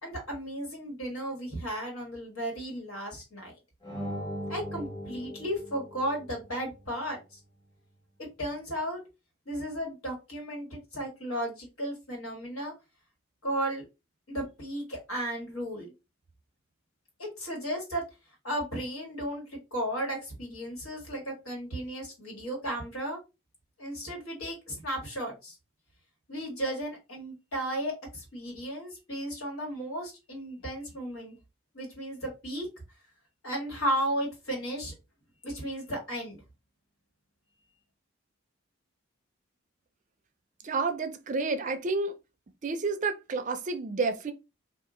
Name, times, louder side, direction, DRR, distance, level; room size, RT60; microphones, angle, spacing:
voice 1, 0.0-3.5 4.5-7.4 8.4-9.0 9.4-12.7 13.4-13.9 14.3-15.9 17.2-18.0 18.4-19.4 19.7-23.2 23.8-25.5 26.3-31.3 31.7-32.7 33.4-34.9 35.4-36.4, right 1 dB, 85° left, 1.7 m, -34 dB
sound 1, 3.8-6.5, equal, 20° left, 1.0 m, -39 dB
voice 2, 40.6-42.1 42.6-44.3, right 3 dB, 35° right, 0.4 m, -30 dB
2.8 x 2.4 x 3.6 m
head